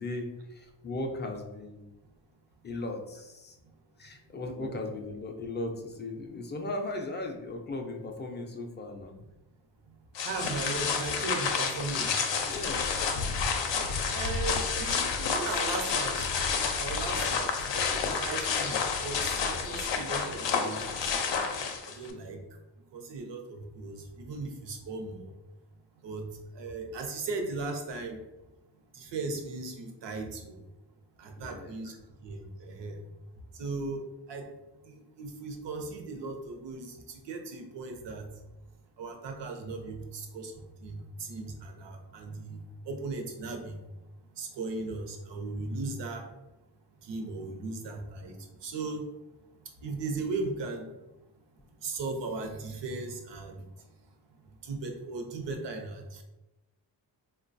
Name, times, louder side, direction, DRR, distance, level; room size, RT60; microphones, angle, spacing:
voice 1, 0.0-1.9 2.6-3.6 4.0-9.2 12.0-12.1 12.5-13.0 31.4-31.7, left 2 dB, 25° left, 3 dB, 0.3 m, -37 dB
sound 1, 10.1-22.1, left 5 dB, 90° left, 0.5 m, -30 dB
voice 2, 10.2-12.2 14.1-16.3 16.8-19.2 19.6-21.2 21.8-22.4 22.9-25.3 26.0-26.3 26.5-28.2 28.9-30.6 31.2-32.0 32.2-33.0 33.5-34.5 34.8-38.3 39.0-43.8 44.4-46.3 47.0-48.4 48.6-49.0 49.8-50.9 51.8-53.6 54.6-56.2, right 3 dB, 80° right, 4 dB, 0.6 m, -37 dB
3.8 x 2.2 x 2.5 m, 0.99 s
wide cardioid pair, 135°, 42 cm